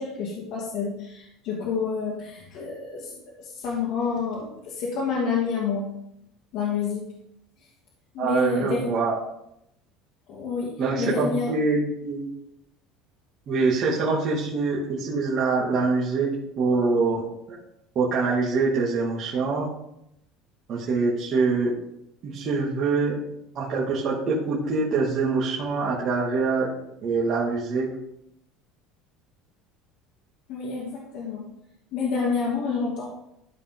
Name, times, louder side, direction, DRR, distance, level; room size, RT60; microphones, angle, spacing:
voice 1, 0.0-5.9 6.5-7.1 8.1-8.9 10.3-11.6 30.5-31.5 31.9-33.1, left 5 dB, 60° left, -5 dB, 2.5 m, -28 dB
voice 2, 8.2-9.2 10.8-12.3 13.5-17.2 17.5-17.6 17.9-19.7 20.7-21.7 22.2-23.2 23.5-26.7 27.0-27.9, right 4 dB, 40° right, -6 dB, 2.3 m, -24 dB
14.0 x 5.0 x 3.8 m, 0.79 s
cardioid pair, 145°, 0 cm